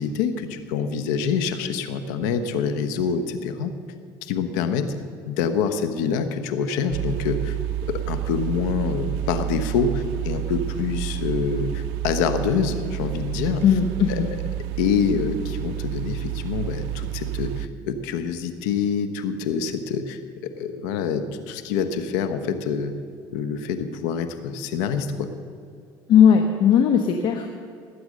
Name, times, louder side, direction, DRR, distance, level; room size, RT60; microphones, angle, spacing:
voice 1, 0.0-3.7 4.2-4.9 5.3-7.6 7.9-13.6 14.1-14.2 14.8-22.9 23.3-25.3, left 6 dB, 90° left, 9 dB, 1.1 m, -26 dB
sound 1, 6.9-17.7, right 13 dB, 80° right, 0.5 m, -29 dB
voice 2, 13.6-14.3 26.1-27.6, left 8 dB, 60° left, 5 dB, 1.1 m, -17 dB
19.5 x 8.0 x 6.4 m, 2.3 s
supercardioid pair, 95°, 9 cm